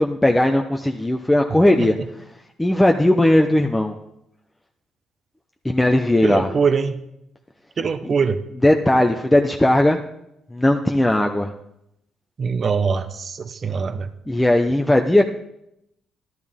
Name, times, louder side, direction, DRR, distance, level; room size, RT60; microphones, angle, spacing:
voice 1, 0.0-1.9 2.6-3.9 5.6-6.5 8.6-10.0 10.5-11.5 14.3-15.2, left 1 dB, 10° left, 2 dB, 0.8 m, -17 dB
voice 2, 6.2-7.0 7.8-8.4 12.4-14.1, right 5 dB, 45° right, 10 dB, 1.0 m, -22 dB
12.0 x 12.0 x 3.7 m, 0.81 s
cardioid pair, 85°, 0 cm